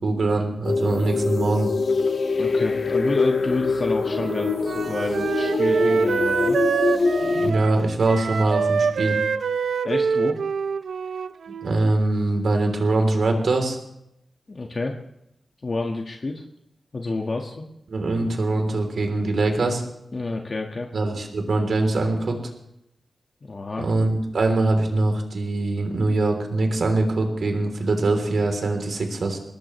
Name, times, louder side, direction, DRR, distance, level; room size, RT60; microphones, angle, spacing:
voice 1, 0.0-1.7 7.3-9.2 11.6-13.8 17.9-19.8 20.9-22.4 23.8-29.4, right 2 dB, 75° right, 4 dB, 3.4 m, -23 dB
sound 1, 0.6-7.5, left 4 dB, 75° left, 1.7 m, -24 dB
voice 2, 2.4-6.6 9.8-10.4 14.5-15.0 15.6-16.4 16.9-17.6 20.1-20.9 23.4-23.9, left 3 dB, 50° left, 1 dB, 1.6 m, -29 dB
Wind instrument woodwind instrument, 4.2-11.9, right 5 dB, 90° right, 0.6 m, -25 dB
23.5 x 19.0 x 3.2 m, 0.80 s
wide cardioid pair, 80°, 0 cm